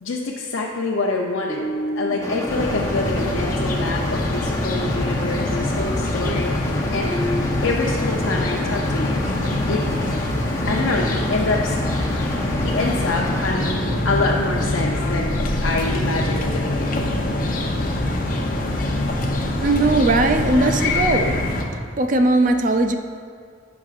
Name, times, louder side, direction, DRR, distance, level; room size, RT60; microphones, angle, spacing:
voice 1, 0.0-1.7 2.0-7.2 7.6-9.2 9.7-9.9 10.7-11.8 12.6-13.7 14.0-15.4 15.6-17.1, left 3 dB, 75° left, -2 dB, 0.7 m, -26 dB
sound 1, 1.0-4.4 6.1-7.4, right 1 dB, 65° right, 1.2 m, -32 dB
sound 2, 2.2-13.5, left 1 dB, 15° left, 0.7 m, -31 dB
sound 3, 2.5-21.6, left 1 dB, 45° left, 0.8 m, -24 dB
voice 2, 19.6-21.4 22.0-22.9, right 2 dB, 40° right, 6 dB, 0.5 m, -18 dB
16.0 x 6.0 x 2.5 m, 2.1 s
head